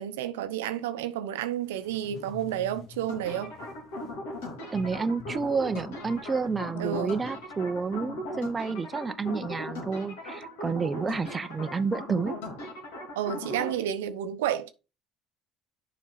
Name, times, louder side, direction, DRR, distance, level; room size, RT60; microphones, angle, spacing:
voice 1, 0.0-3.5 6.8-7.1 13.2-14.7, right 10 dB, 80° right, 0.7 m, -31 dB
sound 1, 1.6-8.4, left 8 dB, 55° left, 1.0 m, -48 dB
sound 2, 3.1-13.7, left 1 dB, 75° left, 2.9 m, -38 dB
voice 2, 4.7-12.3, right 4 dB, 25° right, 0.6 m, -30 dB
7.2 x 5.1 x 4.1 m
hypercardioid pair, 65°, 0 cm